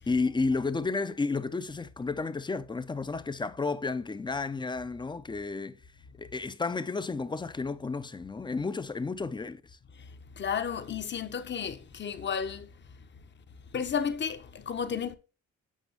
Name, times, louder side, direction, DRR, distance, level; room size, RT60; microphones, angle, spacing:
voice 1, 0.1-5.8 6.2-9.6, left 4 dB, 15° left, 0.5 m, -32 dB
voice 2, 9.9-12.7 13.7-15.2, left 7 dB, 35° left, 0.8 m, -33 dB
8.2 x 5.1 x 3.4 m
cardioid pair, 90°, 30 cm